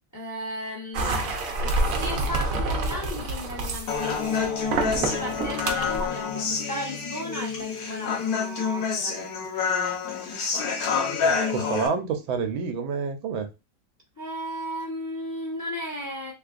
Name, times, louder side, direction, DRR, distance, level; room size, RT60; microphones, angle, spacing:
voice 1, 0.1-4.6 5.0-10.0 14.2-16.3, equal, 25° left, 0.4 m, -35 dB
sound 1, 0.9-6.1, right 2 dB, 60° right, 0.9 m, -28 dB
Human voice, 3.9-11.9, left 6 dB, 60° left, 1.1 m, -28 dB
voice 2, 11.2-13.5, right 5 dB, 85° right, 1.5 m, -28 dB
3.4 x 3.3 x 2.4 m
omnidirectional pair, 2.1 m